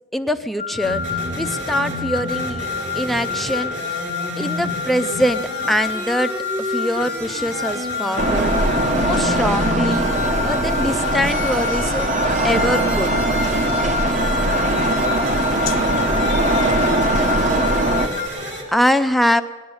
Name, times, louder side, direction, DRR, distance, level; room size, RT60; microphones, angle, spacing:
voice 1, 0.1-2.7 3.0-3.9 4.4-6.3 6.6-8.5 8.9-10.1 10.4-12.1 12.4-13.3 18.7-19.4, equal, ahead, 0.4 m, -23 dB
sound 1, 0.6-18.3, left 7 dB, 40° left, 0.7 m, -29 dB
sound 2, 0.8-18.6, equal, 60° right, 3.5 m, -31 dB
sound 3, 8.2-18.1, right 1 dB, 40° right, 0.9 m, -20 dB
voice 2, 14.6-17.2, left 7 dB, 85° left, 0.7 m, -33 dB
19.0 x 10.5 x 7.0 m
head